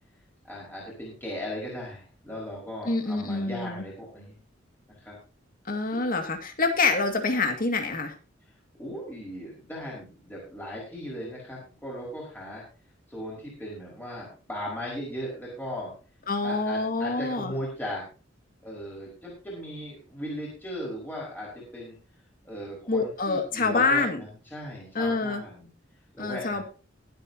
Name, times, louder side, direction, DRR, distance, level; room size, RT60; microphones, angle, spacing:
voice 1, 0.4-4.3 4.9-5.1 5.9-6.0 8.8-12.6 13.1-15.9 16.4-18.0 18.6-21.9 22.4-25.7 26.1-26.6, equal, 10° left, -5 dB, 5.1 m, -37 dB
voice 2, 2.9-3.8 5.7-8.1 16.3-17.5 22.9-24.2 24.9-25.4 26.2-26.6, left 3 dB, 45° left, 5 dB, 2.2 m, -26 dB
22.5 x 8.4 x 2.9 m, 0.35 s
head